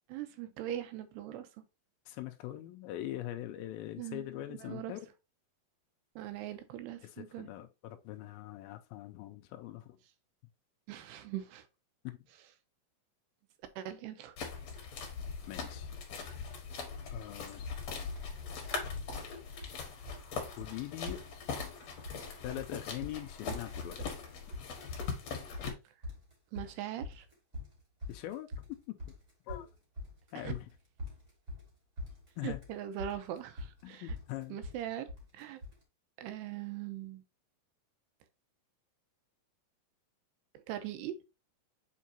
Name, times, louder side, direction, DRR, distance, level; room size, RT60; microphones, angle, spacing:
voice 1, 0.1-1.5 4.0-5.0 6.2-7.5 10.9-11.7 13.8-14.4 26.5-27.3 30.4-30.5 32.4-34.2 34.5-35.1 35.3-35.6 36.2-37.2 40.5-41.1, right 11 dB, 85° right, 2.9 m, -41 dB
voice 2, 2.1-5.0 7.0-10.0 12.0-12.2 15.5-15.9 17.1-17.7 20.6-21.2 22.4-24.1 28.1-28.5 28.9-29.0 29.5-29.7 30.3-30.7 32.4-32.6 33.8-34.6, left 14 dB, 85° left, 2.1 m, -42 dB
sound 1, 14.4-25.7, left 5 dB, 55° left, 2.2 m, -41 dB
sound 2, 17.7-17.9 18.2-18.8 19.1-19.8 20.1-20.3 20.6-20.7 21.1-21.8 22.0-22.7 23.0-35.8, left 2 dB, 25° right, 1.8 m, -44 dB
7.3 x 4.6 x 2.8 m
omnidirectional pair, 4.7 m